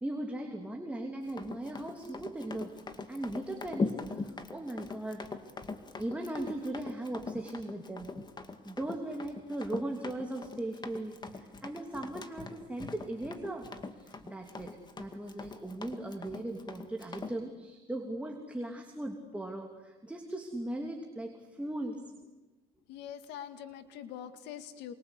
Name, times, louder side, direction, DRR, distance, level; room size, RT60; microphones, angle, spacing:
voice 1, 0.0-2.8 3.1-5.2 6.0-8.1 8.6-13.7 14.0-14.7 15.0-22.0, right 1 dB, 5° right, 2 dB, 3.0 m, -38 dB
Run, 1.3-17.4, left 3 dB, 25° left, 2.1 m, -41 dB
voice 2, 22.9-24.9, left 9 dB, 90° left, 9 dB, 2.1 m, -44 dB
27.5 x 24.0 x 8.3 m, 1.1 s
cardioid pair, 110°, 17 cm